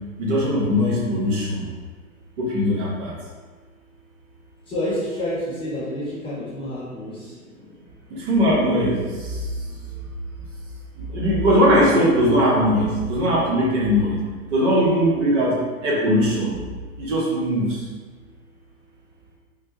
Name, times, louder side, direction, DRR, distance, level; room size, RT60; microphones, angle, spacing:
voice 1, 0.2-1.6 2.4-3.1 8.1-9.4 11.1-14.2 14.5-16.5 17.0-17.8, equal, 50° right, -5 dB, 1.0 m, -20 dB
voice 2, 4.7-7.4 9.8-10.0, left 1 dB, 10° left, -9 dB, 1.1 m, -29 dB
3.5 x 2.1 x 3.0 m, 1.5 s
hypercardioid pair, 110°, 45 cm